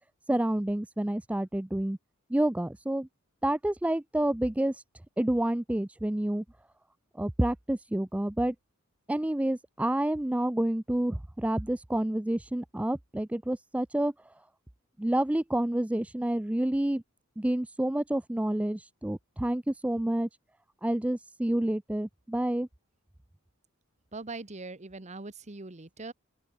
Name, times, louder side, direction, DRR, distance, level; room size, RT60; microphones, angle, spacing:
voice 1, 0.3-2.0 2.3-3.1 3.4-4.8 5.2-6.4 7.2-8.5 9.1-14.1 15.0-17.0 17.4-20.3 20.8-22.7, right 1 dB, 5° right, 0.3 m, -29 dB
voice 2, 24.1-26.1, right 3 dB, 30° right, 1.2 m, -41 dB
open air
head